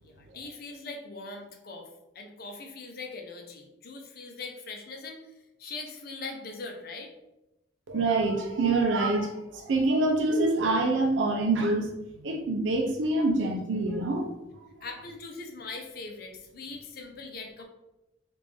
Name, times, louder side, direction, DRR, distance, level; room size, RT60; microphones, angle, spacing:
voice 1, 0.0-1.9 2.1-5.3 5.6-7.1 14.8-17.6, left 3 dB, 55° left, 3 dB, 0.6 m, -41 dB
voice 2, 7.9-14.3, right 2 dB, 80° right, 2 dB, 0.5 m, -26 dB
3.5 x 2.5 x 3.3 m, 0.93 s
head